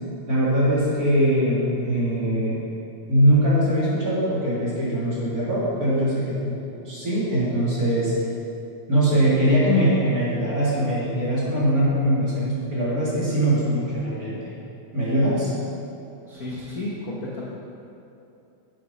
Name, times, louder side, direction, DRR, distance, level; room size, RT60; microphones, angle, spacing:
voice 1, 0.3-2.6 3.1-6.6 6.8-8.1 8.9-14.4 14.9-15.5, equal, 30° right, -8 dB, 2.4 m, -21 dB
voice 2, 16.2-17.4, left 2 dB, 70° left, -6 dB, 0.8 m, -32 dB
8.5 x 7.7 x 5.4 m, 2.8 s
omnidirectional pair, 3.4 m